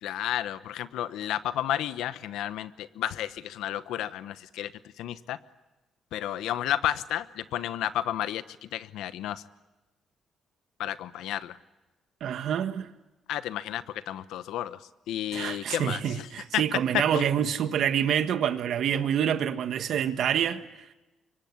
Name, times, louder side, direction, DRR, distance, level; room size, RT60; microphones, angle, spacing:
voice 1, 0.0-4.7 5.0-5.4 6.1-9.4 10.8-11.6 13.3-14.8 15.1-16.3 16.5-16.6 17.1-17.3, left 12 dB, 85° left, 1.0 m, -32 dB
voice 2, 12.2-12.9 15.3-20.7, right 9 dB, 70° right, 1.5 m, -27 dB
24.5 x 24.0 x 9.7 m
cardioid pair, 90°, 0 cm